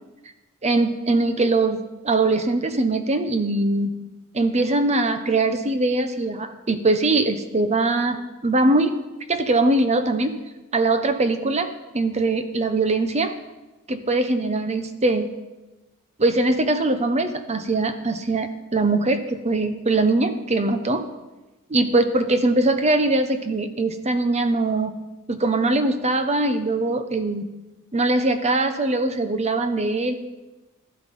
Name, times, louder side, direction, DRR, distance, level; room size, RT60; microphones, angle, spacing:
voice 1, 0.6-3.9 4.3-8.2 8.4-9.0 9.3-10.4 10.7-13.3 13.9-15.3 16.2-21.0 21.7-24.9 25.3-27.5 27.9-30.1, right 2 dB, 30° right, 9 dB, 1.0 m, -21 dB
13.5 x 12.0 x 5.5 m, 1.1 s
head